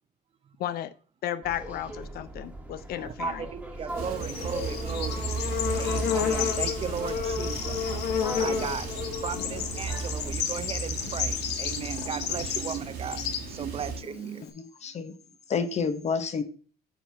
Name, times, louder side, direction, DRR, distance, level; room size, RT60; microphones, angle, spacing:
voice 1, 0.6-0.9 1.2-3.5, left 11 dB, 65° left, 0.5 m, -34 dB
sound 1, 1.4-10.3, right 1 dB, 5° right, 1.4 m, -40 dB
voice 2, 3.0-5.3 5.8-7.8 8.4-14.5, right 7 dB, 35° right, 0.5 m, -36 dB
Bird / Insect, 3.9-14.5, left 8 dB, 80° left, 1.1 m, -31 dB
sound 2, 3.9-14.0, right 5 dB, 70° right, 1.6 m, -36 dB
voice 3, 14.5-15.1 15.5-16.4, left 5 dB, 40° left, 1.0 m, -29 dB
8.9 x 4.5 x 3.4 m
cardioid pair, 110°, 17 cm